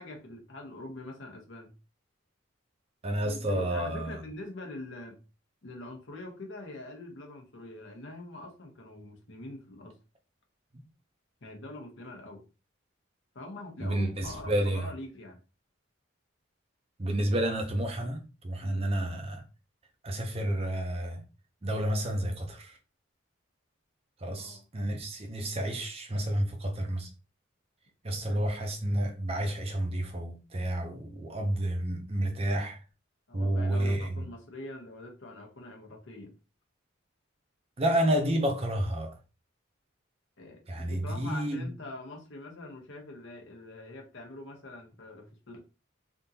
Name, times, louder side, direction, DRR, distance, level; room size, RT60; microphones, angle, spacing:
voice 1, 0.0-1.7 3.2-5.2 5.6-9.9 11.4-12.4 13.3-15.4 18.6-18.8 24.3-24.6 28.3-28.4 33.3-36.3 40.4-45.6, left 2 dB, 65° left, 1.0 m, -44 dB
voice 2, 3.0-4.2 13.8-14.9 17.0-19.4 20.0-21.2 21.6-22.8 24.2-27.1 28.0-32.8 33.3-34.1 37.8-39.1 40.7-41.7, right 1 dB, 30° right, 0.6 m, -30 dB
3.5 x 2.6 x 2.8 m
head